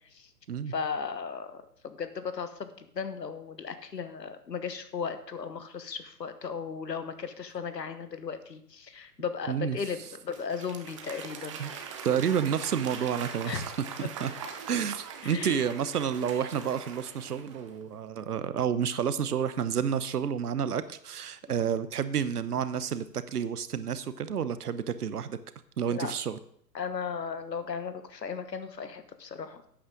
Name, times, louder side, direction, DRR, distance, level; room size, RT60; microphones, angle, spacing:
voice 1, 0.7-11.6 13.5-13.6 14.0-14.1 15.2-15.7 25.9-26.1 26.7-29.6, left 6 dB, 80° left, 11 dB, 1.3 m, -36 dB
voice 2, 9.5-9.8 11.6-11.7 12.0-13.6 14.2-14.3 14.7-25.4 25.8-26.4, right 8 dB, 70° right, 13 dB, 0.9 m, -30 dB
Applause / Crowd, 10.0-17.8, right 6 dB, 20° right, 0.6 m, -42 dB
11.5 x 8.7 x 3.8 m, 0.66 s
figure-of-eight pair, 135°, 49 cm